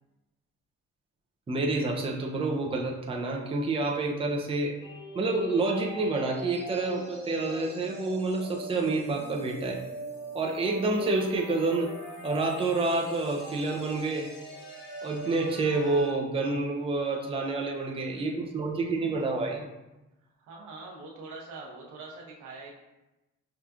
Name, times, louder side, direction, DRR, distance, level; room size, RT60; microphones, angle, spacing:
voice 1, 1.5-4.7 5.1-9.8 10.3-11.9 12.2-14.3 15.0-19.7, right 3 dB, 20° right, 0 dB, 0.5 m, -28 dB
sound 1, 4.8-16.1, left 1 dB, 35° left, 1.4 m, -40 dB
voice 2, 17.6-18.4 20.4-22.7, right 3 dB, 80° right, -3 dB, 1.0 m, -45 dB
5.7 x 2.4 x 2.4 m, 1.0 s
cardioid pair, 90°, 30 cm